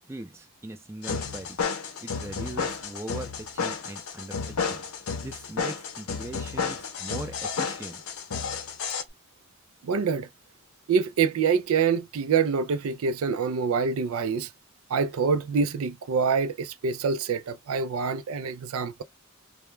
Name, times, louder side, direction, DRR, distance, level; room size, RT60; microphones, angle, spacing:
voice 1, 0.1-1.6 2.0-4.8 5.2-8.0, right 1 dB, 10° right, 0.4 m, -40 dB
sound 1, 1.0-9.0, left 5 dB, 85° left, 0.6 m, -32 dB
voice 2, 9.8-10.3 10.9-14.5 14.9-19.0, right 5 dB, 80° right, 0.4 m, -26 dB
2.2 x 2.1 x 3.1 m
head